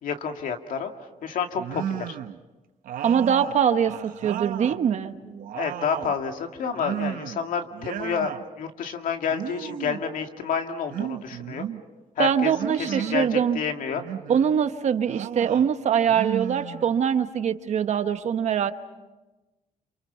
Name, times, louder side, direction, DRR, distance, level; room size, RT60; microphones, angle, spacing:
voice 1, 0.0-0.9 1.2-2.2 5.5-11.7 12.2-12.5 12.8-14.0, left 6 dB, 75° left, 5 dB, 2.3 m, -29 dB
sound 1, 1.6-2.4 2.8-4.8 5.2-6.2 6.8-7.4 7.7-8.4 9.3-10.1 10.9-11.8 12.6-13.3 13.9-14.6 15.1-15.7 16.1-17.2, right 10 dB, 80° right, 0.9 m, -34 dB
voice 2, 3.0-5.1 12.2-13.6 14.3-18.7, right 8 dB, 55° right, 9 dB, 1.2 m, -23 dB
29.0 x 28.0 x 5.7 m, 1.1 s
cardioid pair, 150°, 14 cm